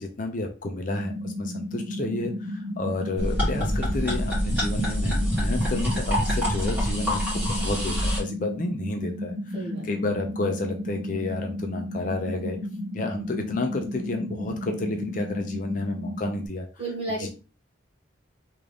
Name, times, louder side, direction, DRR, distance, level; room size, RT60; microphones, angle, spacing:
voice 1, 0.0-12.6 12.9-16.7 17.2-17.3, left 2 dB, 40° left, 4 dB, 0.5 m, -31 dB
sound 1, 0.9-16.5, left 1 dB, 45° right, 0.9 m, -33 dB
sound 2, 3.2-8.2, equal, 10° right, 1.9 m, -26 dB
voice 2, 9.5-9.9 16.8-17.3, right 2 dB, 25° right, -4 dB, 1.6 m, -32 dB
3.6 x 2.5 x 3.3 m, 0.33 s
head